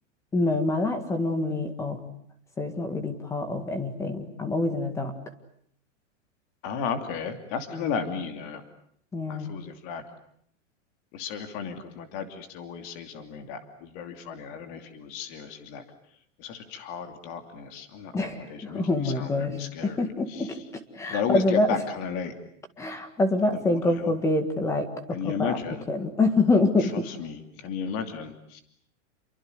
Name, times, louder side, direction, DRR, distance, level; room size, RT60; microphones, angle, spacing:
voice 1, 0.3-2.0 2.6-5.2 9.1-9.5 18.1-20.6 20.9-21.8 22.8-25.6 25.9-27.1, left 2 dB, 10° left, 8 dB, 1.8 m, -26 dB
voice 2, 6.6-8.6 9.3-10.0 11.1-15.8 16.4-20.5 21.1-22.4 23.5-24.1 25.1-25.9 26.9-28.6, left 7 dB, 30° left, 7 dB, 2.8 m, -34 dB
29.5 x 23.5 x 8.0 m, 0.66 s
supercardioid pair, 175°, 37 cm